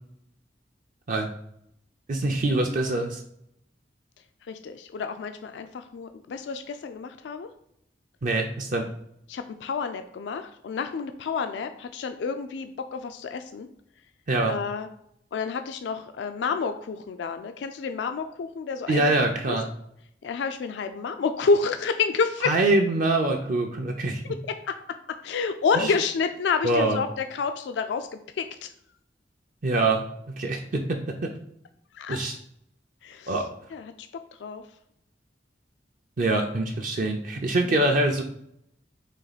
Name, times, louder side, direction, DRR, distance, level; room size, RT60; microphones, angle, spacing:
voice 1, 2.1-3.2 8.2-8.9 14.3-14.6 18.9-19.7 22.4-24.2 25.7-25.9 26.6-27.0 29.6-31.3 32.1-32.4 33.3-33.5 36.2-38.2, right 2 dB, 50° right, 2 dB, 0.5 m, -24 dB
voice 2, 4.5-7.5 9.3-13.7 14.5-14.9 15.3-19.1 19.5-19.6 20.2-22.5 24.7-24.8 25.2-28.7 31.9-32.2 33.0-33.3 33.7-34.1 34.4-34.6 37.6-37.9, left 5 dB, 85° left, 8 dB, 0.3 m, -29 dB
4.1 x 3.0 x 4.0 m, 0.74 s
head